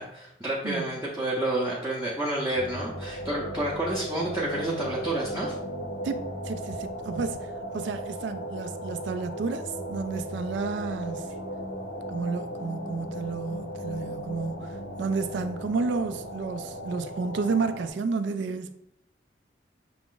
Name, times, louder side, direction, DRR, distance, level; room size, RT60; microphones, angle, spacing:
voice 1, 0.0-5.5, right 1 dB, 15° right, 0.6 m, -29 dB
sound 1, 2.5-17.9, equal, 70° left, 0.6 m, -36 dB
voice 2, 6.0-11.3 12.1-18.7, right 4 dB, 80° right, 0.3 m, -31 dB
5.9 x 2.4 x 3.7 m
head